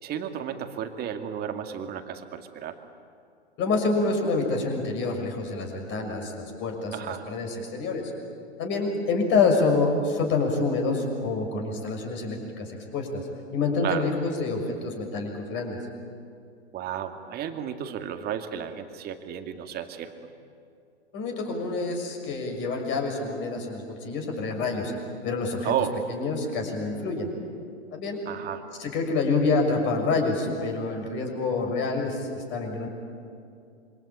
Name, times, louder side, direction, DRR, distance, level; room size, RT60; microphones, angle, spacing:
voice 1, 0.0-2.8 6.9-7.2 13.8-14.0 16.7-20.3 25.6-26.0 28.3-28.6, right 10 dB, 30° right, 6 dB, 2.3 m, -32 dB
voice 2, 3.6-8.1 8.6-13.2 13.5-15.8 21.1-24.9 25.2-25.7 26.1-27.3 27.9-28.2 28.8-32.9, left 3 dB, 35° left, 2 dB, 6.6 m, -27 dB
27.0 x 24.5 x 8.9 m, 2.5 s
hypercardioid pair, 115°, 33 cm